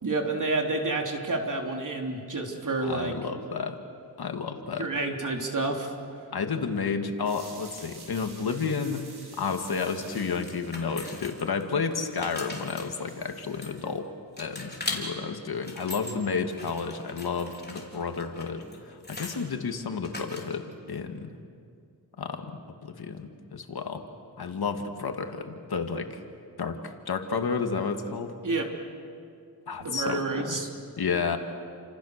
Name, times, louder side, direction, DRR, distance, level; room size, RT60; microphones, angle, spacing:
voice 1, 0.0-3.1 4.8-5.9 28.4-28.7 29.8-30.7, right 3 dB, 55° right, 2 dB, 3.5 m, -29 dB
voice 2, 2.8-3.8 4.2-4.9 6.3-9.0 9.4-14.1 14.4-21.4 22.2-22.5 22.8-24.1 24.4-26.2 26.6-28.4 29.7-30.6 31.0-31.4, left 5 dB, 75° left, 5 dB, 2.1 m, -31 dB
sound 1, 7.2-11.1 11.9-12.1 12.5-12.6 12.8-13.8, right 3 dB, 85° right, 5.9 m, -49 dB
sound 2, 10.1-11.6 12.0-14.0 14.4-15.0 15.5-16.1 16.5-19.4 20.0-20.7, left 2 dB, 25° left, 4.3 m, -40 dB
29.5 x 27.0 x 6.7 m, 2.3 s
wide cardioid pair, 90°, 38 cm